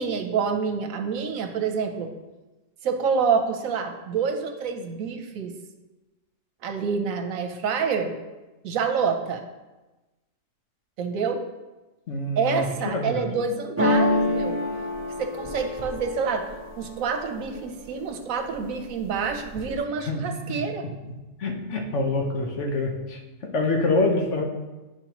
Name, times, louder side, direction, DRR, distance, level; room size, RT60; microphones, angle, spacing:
voice 1, 0.0-2.1 2.8-5.5 6.6-8.2 8.6-9.5 11.0-11.4 12.4-14.6 15.2-16.5 16.8-20.9, right 5 dB, 80° right, 5 dB, 1.1 m, -27 dB
voice 2, 12.1-13.3 20.1-20.6 21.4-24.4, left 2 dB, 60° left, 2 dB, 1.2 m, -26 dB
sound 1, 13.8-17.6 18.1-18.7 19.0-19.8, left 1 dB, 10° right, 1.1 m, -27 dB
9.9 x 4.9 x 3.0 m, 1.1 s
omnidirectional pair, 1.4 m